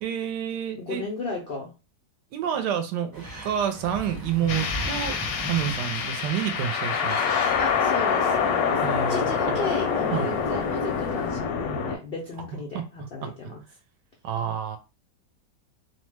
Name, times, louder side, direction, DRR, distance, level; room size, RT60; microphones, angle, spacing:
voice 1, 0.0-1.0 2.3-7.3 8.8-9.5 10.1-10.3 12.4-12.5 12.7-13.3 14.2-14.8, right 9 dB, 75° right, 7 dB, 1.1 m, -29 dB
voice 2, 0.8-1.7 7.6-8.8 9.1-13.6, left 3 dB, 85° left, -1 dB, 0.5 m, -34 dB
sound 1, 3.1-11.3, equal, 20° right, 0.5 m, -39 dB
sound 2, 4.5-12.0, left 6 dB, 70° left, 0.9 m, -26 dB
2.9 x 2.1 x 3.2 m, 0.29 s
omnidirectional pair, 1.9 m